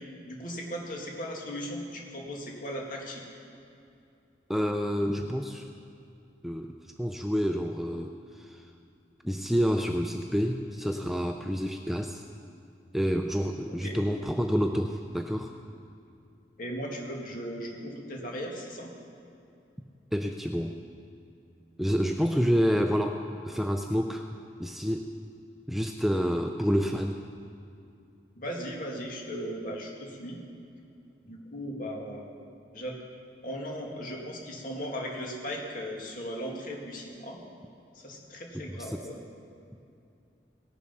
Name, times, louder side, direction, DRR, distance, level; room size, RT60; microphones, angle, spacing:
voice 1, 0.3-3.2 13.8-14.0 16.6-18.9 28.4-30.4 31.2-32.2 32.7-32.9 33.4-37.4 37.9-39.2, equal, 50° left, -1 dB, 2.2 m, -37 dB
voice 2, 4.5-5.7 6.4-6.7 7.0-8.6 9.2-12.2 12.9-15.5 20.1-20.8 21.8-24.3 24.6-25.1 25.7-27.2 38.8-39.0, equal, ahead, 4 dB, 0.4 m, -28 dB
18.5 x 7.3 x 5.8 m, 2.6 s
head